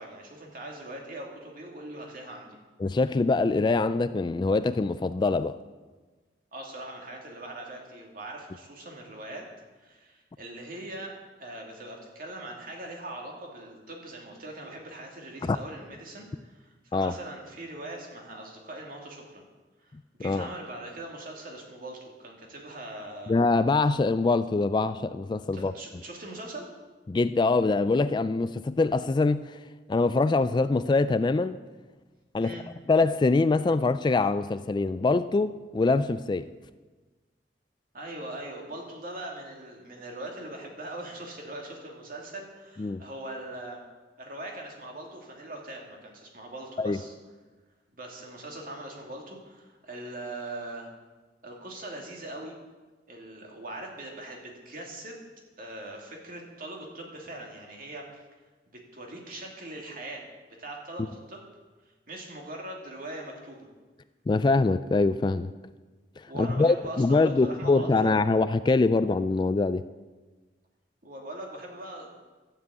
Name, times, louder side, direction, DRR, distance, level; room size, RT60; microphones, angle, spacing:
voice 1, 0.0-2.6 6.5-9.5 9.8-11.1 11.4-19.4 19.8-19.9 20.2-23.3 25.5-26.7 32.4-32.6 37.9-43.8 44.2-47.1 47.9-50.9 51.4-52.5 53.1-55.2 55.6-58.2 58.9-60.2 60.6-61.4 62.1-63.7 66.3-68.2 71.0-72.2, right 1 dB, 50° right, 0 dB, 2.6 m, -41 dB
voice 2, 2.8-5.6 15.5-15.6 16.9-17.1 20.2-20.5 23.3-25.7 27.1-29.6 29.9-31.6 32.3-32.6 32.9-36.5 42.8-43.0 46.8-47.0 64.3-65.5 66.2-69.8, left 3 dB, 25° left, 13 dB, 0.3 m, -24 dB
12.5 x 7.6 x 8.2 m, 1.3 s
head